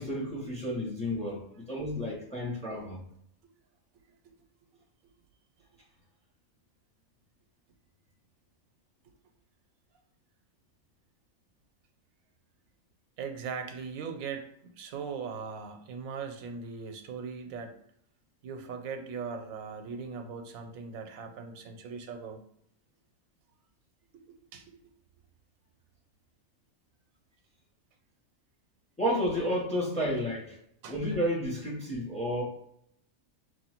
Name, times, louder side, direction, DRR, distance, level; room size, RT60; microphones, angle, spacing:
voice 1, 0.0-3.0 29.0-30.6 30.9-32.4, equal, 5° left, -3 dB, 0.9 m, -31 dB
voice 2, 13.2-14.5 14.8-17.8 18.4-22.4 24.1-24.8 30.8-31.0, right 5 dB, 90° right, 6 dB, 1.0 m, -39 dB
3.1 x 2.6 x 4.3 m, 0.72 s
omnidirectional pair, 1.4 m